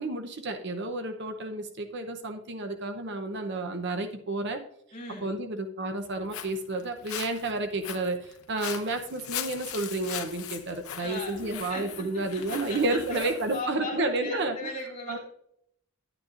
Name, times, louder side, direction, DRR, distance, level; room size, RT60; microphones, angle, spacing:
voice 1, 0.0-4.6 5.2-14.6 15.1-15.2, right 2 dB, 50° right, 6 dB, 0.7 m, -31 dB
voice 2, 4.9-5.3 11.0-15.2, left 2 dB, 30° left, -4 dB, 3.0 m, -38 dB
Walk footsteps, 6.0-13.6, left 10 dB, 75° left, 0.8 m, -40 dB
11.0 x 9.1 x 2.5 m, 0.73 s
head